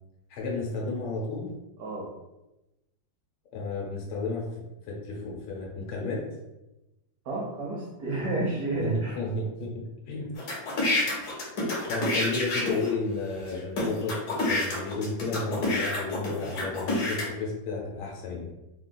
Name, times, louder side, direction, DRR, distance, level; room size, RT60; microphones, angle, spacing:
voice 1, 0.3-1.5 3.5-4.5 4.9-6.2 8.8-10.3 11.9-14.1 14.5-18.5, left 3 dB, 85° left, -2 dB, 1.6 m, -32 dB
voice 2, 1.8-2.1 7.2-9.2, right 2 dB, 70° right, -3 dB, 0.9 m, -31 dB
sound 1, 10.4-12.9 13.5-13.6 13.8-17.3, left 2 dB, 65° left, 1.2 m, -28 dB
3.5 x 2.4 x 2.2 m, 0.97 s
omnidirectional pair, 2.2 m